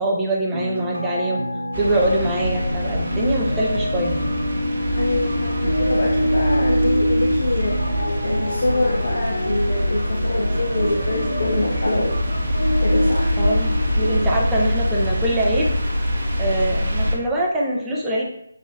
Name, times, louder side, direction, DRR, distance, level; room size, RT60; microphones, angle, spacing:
voice 1, 0.0-1.4 1.8-4.2 13.4-15.7 16.4-18.2, right 1 dB, 10° right, -4 dB, 0.6 m, -23 dB
sound 1, 0.5-14.3, equal, 85° right, 1.0 m, -26 dB
sound 2, 1.7-17.2, equal, 55° right, 1.0 m, -24 dB
voice 2, 4.9-12.2 12.8-13.3, left 2 dB, 55° left, -2 dB, 0.6 m, -25 dB
6.0 x 2.6 x 2.7 m, 0.77 s
figure-of-eight pair, 150°, 0 cm